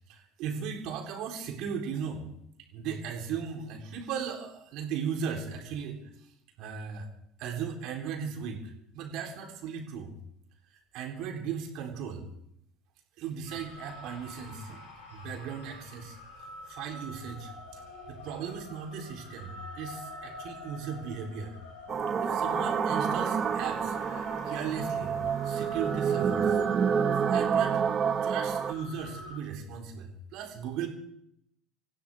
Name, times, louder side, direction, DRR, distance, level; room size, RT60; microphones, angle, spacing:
voice 1, 0.1-2.3 2.7-6.3 6.6-7.1 7.4-10.1 10.7-12.3 13.2-14.8 15.1-16.2 16.7-21.6 22.2-25.2 25.4-26.6 27.3-27.8 28.2-30.9, right 7 dB, 55° right, 2 dB, 3.6 m, -37 dB
sound 1, 13.5-29.4, left 2 dB, 70° left, 6.4 m, -46 dB
sound 2, 21.9-28.7, right 7 dB, 35° right, 1.2 m, -28 dB
26.0 x 15.5 x 3.5 m, 0.75 s
figure-of-eight pair, 70°, 0 cm